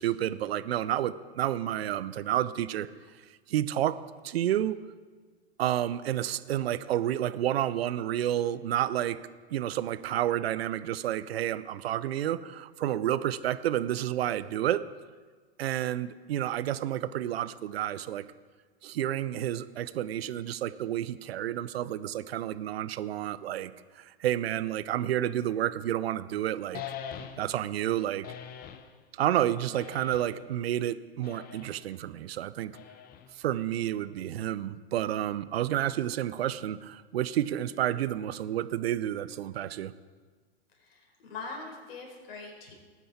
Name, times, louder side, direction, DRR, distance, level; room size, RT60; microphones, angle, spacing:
voice 1, 0.0-2.9 3.5-4.8 5.6-9.2 9.5-14.9 15.6-18.2 18.8-26.8 27.4-28.3 29.1-32.8 33.3-39.9, right 12 dB, 70° right, 16 dB, 0.7 m, -30 dB
sound 1, 26.7-27.7 28.2-28.9 29.7-30.5 31.2-31.8 32.7-33.4, left 9 dB, 30° left, 0.9 m, -43 dB
voice 2, 40.7-42.7, left 3 dB, 60° left, 1 dB, 4.4 m, -42 dB
18.5 x 9.3 x 4.3 m, 1.5 s
hypercardioid pair, 110°, 32 cm